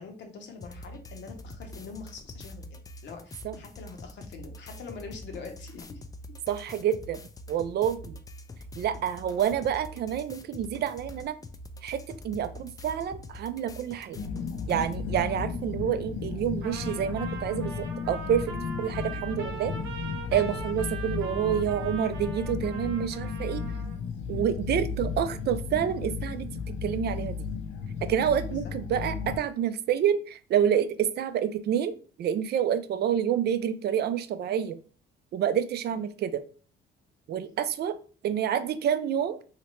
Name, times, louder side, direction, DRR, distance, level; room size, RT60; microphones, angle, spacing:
voice 1, 0.0-6.0 20.4-20.6 28.5-28.6, left 5 dB, 65° left, 4 dB, 0.9 m, -44 dB
sound 1, 0.6-15.0, left 1 dB, 20° left, 0.3 m, -45 dB
voice 2, 6.5-7.2 7.5-8.2 8.8-11.3 11.8-14.2 14.7-18.5 18.8-19.7 20.3-23.6 24.3-26.5 26.8-27.5 28.0-34.8 35.3-36.4 37.3-38.0 38.2-39.4, right 9 dB, 55° right, 11 dB, 0.4 m, -28 dB
sound 2, 14.2-29.4, left 5 dB, 85° left, 0.6 m, -34 dB
Trumpet, 16.6-24.0, right 4 dB, 85° right, 0.9 m, -41 dB
3.1 x 2.8 x 3.0 m, 0.40 s
cardioid pair, 115°, 20 cm